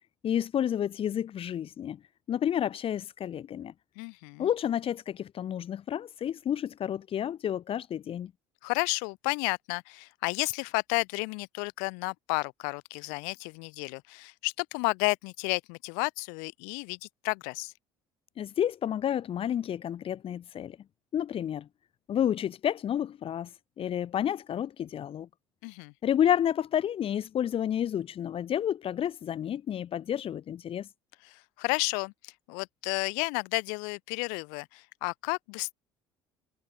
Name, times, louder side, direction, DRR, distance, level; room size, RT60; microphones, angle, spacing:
voice 1, 0.2-2.0 2.3-3.7 4.4-8.3 18.4-20.8 21.1-21.7 22.1-23.5 23.8-25.3 26.0-30.9, left 10 dB, 40° left, 0.9 m, -30 dB
voice 2, 4.0-4.5 8.6-17.7 25.6-25.9 31.2-35.7, left 40 dB or more, 65° left, 2.2 m, -32 dB
figure-of-eight pair, 55°, 15 cm